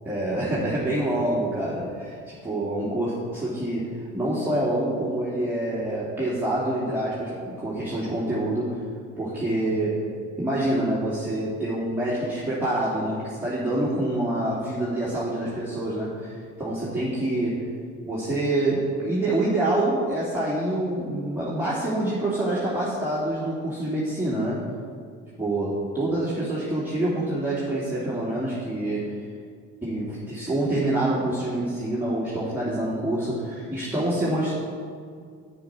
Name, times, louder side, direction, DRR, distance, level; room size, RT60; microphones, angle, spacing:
voice 1, 0.1-8.7 9.2-10.0 10.4-17.6 18.1-24.6 25.4-29.1 29.8-34.5, right 1 dB, 5° right, -9 dB, 2.5 m, -26 dB
9.4 x 7.7 x 4.6 m, 2.2 s
figure-of-eight pair, 50°, 40 cm